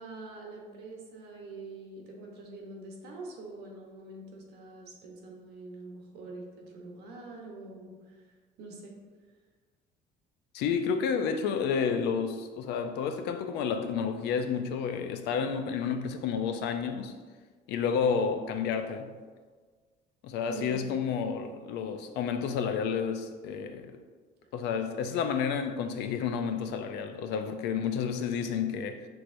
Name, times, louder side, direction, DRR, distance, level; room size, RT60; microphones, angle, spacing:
voice 1, 0.0-8.3 8.6-8.9 20.5-20.9, right 2 dB, 75° right, 1.0 m, -45 dB
voice 2, 10.5-17.1 17.7-19.1 20.2-24.0 24.5-29.1, left 6 dB, 85° left, 0.4 m, -30 dB
5.8 x 3.1 x 2.6 m
cardioid pair, 110°, 17 cm